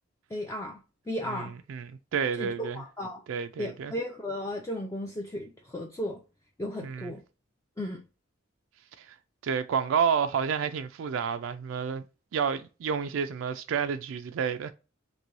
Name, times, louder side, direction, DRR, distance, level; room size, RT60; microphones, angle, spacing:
voice 1, 0.3-0.8 1.1-1.5 2.4-3.2 3.6-6.2 6.6-7.2 7.8-8.0, left 1 dB, 15° left, 0.4 m, -35 dB
voice 2, 1.3-2.8 3.3-3.9 6.8-7.1 9.0-9.1 9.4-12.0 12.3-14.7, right 7 dB, 70° right, 0.3 m, -30 dB
3.1 x 2.6 x 2.5 m
head